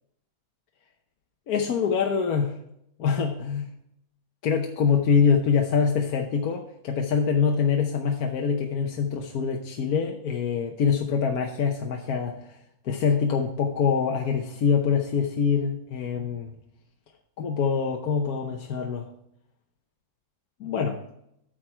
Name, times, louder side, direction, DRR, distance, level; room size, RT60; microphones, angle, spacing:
voice 1, 1.5-2.5 3.0-3.7 4.4-12.6 12.8-16.5 17.4-19.1 20.6-21.0, left 6 dB, 65° left, 2 dB, 1.3 m, -24 dB
9.8 x 6.3 x 4.4 m, 0.76 s
omnidirectional pair, 1.8 m